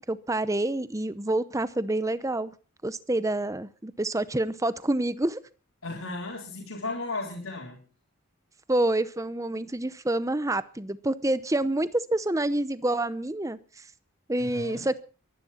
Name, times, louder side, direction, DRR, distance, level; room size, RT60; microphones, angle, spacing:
voice 1, 0.1-2.5 2.8-5.4 8.7-13.8 14.3-15.0, right 1 dB, 15° right, 15 dB, 0.7 m, -27 dB
voice 2, 5.8-7.8 14.4-14.9, left 3 dB, 80° left, -1 dB, 3.9 m, -35 dB
24.0 x 11.5 x 4.3 m, 0.37 s
head